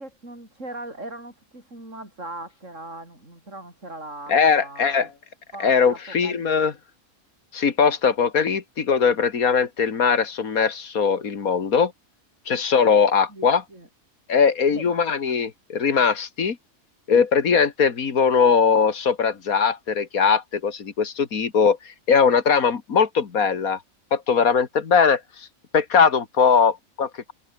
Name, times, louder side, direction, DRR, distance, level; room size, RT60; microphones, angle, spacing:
voice 1, 0.0-5.1 5.5-6.5 13.3-13.9 14.7-15.0, right 2 dB, 60° right, 8.6 m, -39 dB
voice 2, 4.3-5.1 5.6-6.7 7.5-11.9 12.5-13.6 14.3-16.6 17.1-21.8 22.1-23.8 24.1-25.5 25.7-27.3, left 6 dB, 85° left, 2.3 m, -20 dB
omnidirectional pair, 1.5 m